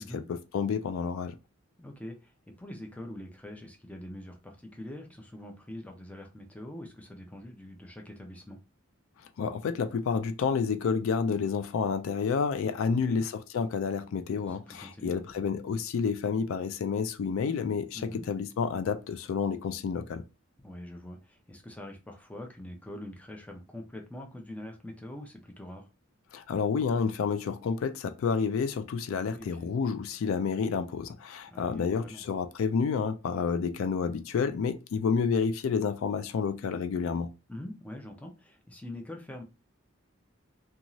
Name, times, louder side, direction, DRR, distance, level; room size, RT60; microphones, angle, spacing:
voice 1, 0.0-1.4 9.4-20.2 26.3-37.3, left 5 dB, 70° left, 0.3 m, -29 dB
voice 2, 1.8-8.6 12.9-13.2 14.4-15.2 17.9-18.3 20.6-25.9 29.3-29.7 31.5-32.2 37.5-39.4, left 1 dB, 5° left, 0.4 m, -44 dB
2.6 x 2.3 x 2.9 m
head